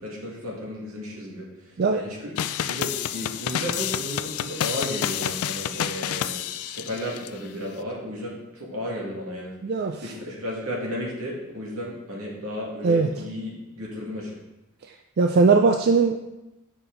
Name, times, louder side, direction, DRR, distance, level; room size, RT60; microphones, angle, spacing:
voice 1, 0.0-1.5 1.9-2.3 2.7-9.5 10.0-14.4, equal, 75° right, -3 dB, 2.2 m, -33 dB
sound 1, 2.4-7.3, left 10 dB, 80° left, 0.4 m, -29 dB
voice 2, 9.6-10.0 12.8-13.1 15.2-16.2, right 4 dB, 50° right, 4 dB, 0.4 m, -19 dB
7.3 x 6.0 x 3.9 m, 0.99 s
head